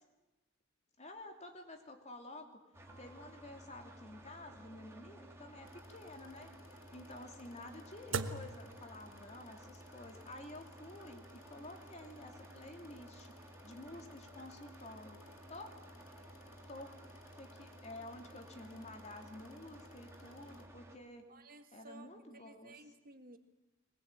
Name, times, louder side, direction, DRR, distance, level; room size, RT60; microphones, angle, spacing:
voice 1, 1.0-2.6 3.0-6.5 6.9-13.4 13.6-15.2 15.5-15.8 16.7-16.9 17.3-21.2 21.7-22.8, left 1 dB, 35° left, 4 dB, 2.9 m, -51 dB
sound 1, 2.7-21.0, right 1 dB, 15° right, 2.6 m, -55 dB
sound 2, 2.9-9.5, right 3 dB, 70° right, 1.3 m, -46 dB
sound 3, 5.6-20.7, left 3 dB, 75° left, 2.1 m, -62 dB
voice 2, 21.3-22.1 22.3-23.4, right 2 dB, 45° right, 7 dB, 2.1 m, -55 dB
22.5 x 21.0 x 9.0 m, 1.0 s
head